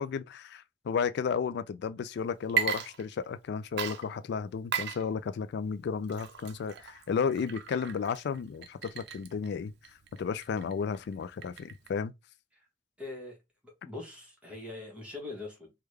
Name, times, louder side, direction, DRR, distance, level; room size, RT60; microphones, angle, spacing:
voice 1, 0.0-9.7 10.1-12.1, left 6 dB, 60° left, 0.3 m, -33 dB
Water / Liquid, 2.4-3.5 3.8-12.0, right 8 dB, 60° right, 0.4 m, -37 dB
voice 2, 13.0-13.4 13.6-15.7, left 2 dB, 5° right, 1.2 m, -42 dB
3.4 x 2.2 x 3.2 m
head